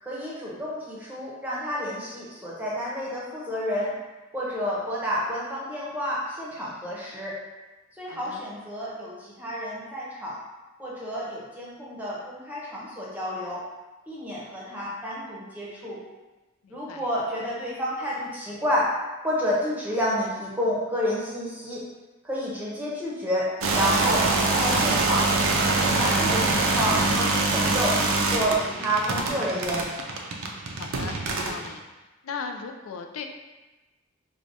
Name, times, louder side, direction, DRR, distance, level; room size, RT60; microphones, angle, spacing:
voice 1, 0.0-3.9 4.3-7.4 8.0-10.4 10.8-13.6 14.1-16.0 16.7-18.9 19.2-21.8 22.2-25.3 25.8-28.0 28.3-29.9, equal, 10° right, -6 dB, 0.7 m, -30 dB
voice 2, 8.1-8.4 16.6-17.1 30.7-31.8 32.2-33.3, left 5 dB, 90° left, 4 dB, 0.4 m, -37 dB
sound 1, 23.6-31.7, right 3 dB, 80° right, 0.5 m, -24 dB
4.7 x 2.2 x 2.6 m, 1.1 s
head